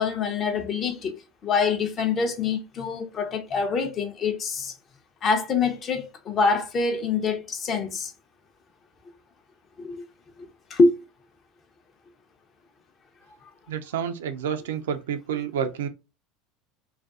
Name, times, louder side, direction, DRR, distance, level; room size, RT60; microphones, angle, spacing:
voice 1, 0.0-4.7 5.2-8.1 9.8-9.9 10.7-11.0, left 4 dB, 40° left, 0.6 m, -25 dB
voice 2, 13.7-15.9, right 8 dB, 80° right, 0.3 m, -29 dB
2.4 x 2.2 x 2.3 m
hypercardioid pair, 80°, 0 cm